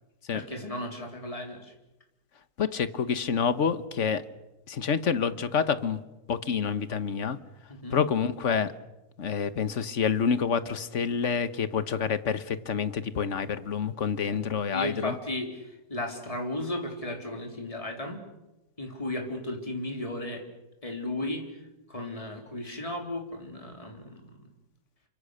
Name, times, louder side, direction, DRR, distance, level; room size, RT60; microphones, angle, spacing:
voice 1, 0.3-1.7 7.8-8.0 14.2-14.4 14.7-18.2 18.8-20.5 20.8-21.5 21.9-24.5, left 1 dB, 20° left, 2 dB, 3.9 m, -35 dB
voice 2, 2.6-4.2 4.7-6.0 6.3-7.4 7.9-8.7 9.2-15.1, left 6 dB, 55° left, 13 dB, 1.5 m, -28 dB
29.5 x 25.0 x 6.6 m, 0.97 s
omnidirectional pair, 1.6 m